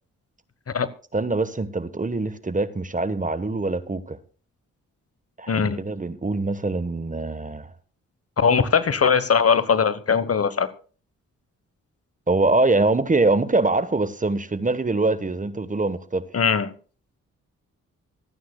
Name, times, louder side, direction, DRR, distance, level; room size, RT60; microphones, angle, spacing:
voice 1, 1.1-4.2 5.4-7.7 12.3-16.2, right 3 dB, 25° right, 1.1 m, -23 dB
voice 2, 5.5-5.8 8.4-10.7 16.3-16.7, left 6 dB, 45° left, 1.1 m, -20 dB
24.5 x 9.4 x 2.2 m
supercardioid pair, 45°, 33 cm